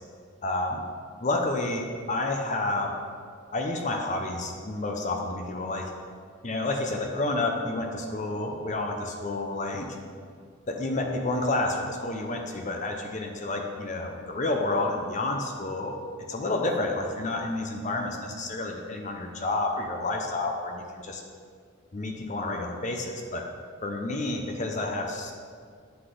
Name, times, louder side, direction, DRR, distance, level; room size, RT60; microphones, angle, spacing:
voice 1, 0.4-0.8 1.2-2.9 3.5-5.9 6.4-10.0 10.7-16.0 16.3-21.2 21.9-23.5 23.8-25.3, left 2 dB, 35° left, 2 dB, 0.6 m, -30 dB
7.9 x 4.0 x 5.0 m, 2.1 s
head